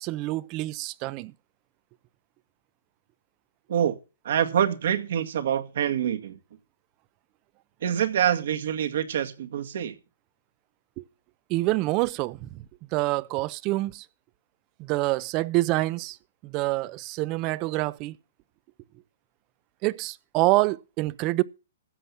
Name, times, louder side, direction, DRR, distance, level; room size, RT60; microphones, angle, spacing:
voice 1, 0.0-1.3 11.0-11.1 11.5-12.6 12.9-14.1 14.8-16.2 16.4-18.2 19.8-21.4, right 20 dB, 35° right, 0.7 m, -26 dB
voice 2, 4.2-6.4 7.8-10.0, right 9 dB, 65° right, 2.2 m, -26 dB
15.0 x 8.1 x 5.8 m
hypercardioid pair, 140°, 0 cm